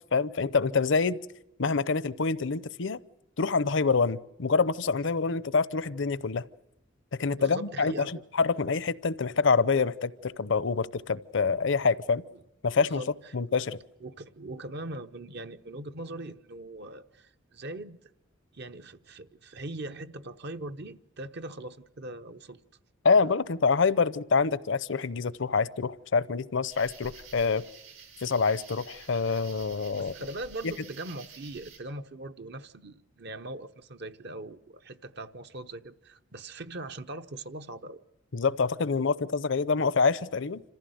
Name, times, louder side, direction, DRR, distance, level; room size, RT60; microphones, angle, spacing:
voice 1, 0.1-1.2 1.6-3.0 3.4-6.5 7.1-12.2 12.6-13.0 13.3-13.8 23.0-27.6 28.2-30.1 38.3-40.6, left 4 dB, 65° left, 0.7 m, -26 dB
voice 2, 7.3-8.2 12.8-13.3 14.0-18.0 18.5-22.6 23.2-23.3 30.0-38.0, right 2 dB, 55° right, 0.9 m, -41 dB
sound 1, 26.7-31.8, right 5 dB, 85° right, 5.3 m, -50 dB
27.0 x 15.0 x 7.9 m
head